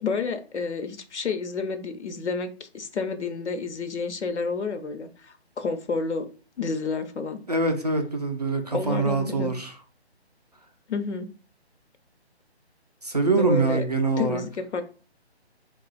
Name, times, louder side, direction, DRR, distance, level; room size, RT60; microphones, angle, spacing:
voice 1, 0.0-6.3 6.6-7.4 8.7-9.5 10.9-11.3 13.3-13.8 14.2-14.8, left 4 dB, 85° left, 0.8 m, -30 dB
voice 2, 7.5-9.7 13.0-14.4, right 3 dB, 40° right, 0.4 m, -24 dB
3.7 x 2.4 x 3.8 m
hypercardioid pair, 170°, 33 cm